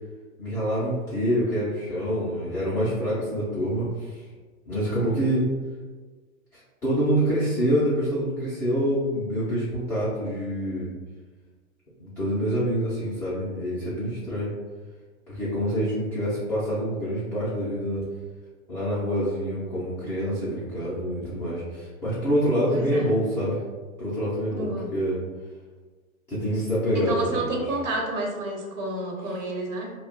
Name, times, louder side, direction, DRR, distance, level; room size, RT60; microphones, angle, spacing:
voice 1, 0.4-4.2 4.7-5.5 6.5-10.9 12.0-14.5 15.3-18.0 18.7-23.6 24.0-25.2 26.3-27.6, equal, 10° left, -13 dB, 0.3 m, -26 dB
voice 2, 22.7-23.1 24.6-24.9 26.9-29.9, right 2 dB, 65° right, 0 dB, 1.0 m, -30 dB
2.3 x 2.1 x 3.9 m, 1.4 s
hypercardioid pair, 120°, 42 cm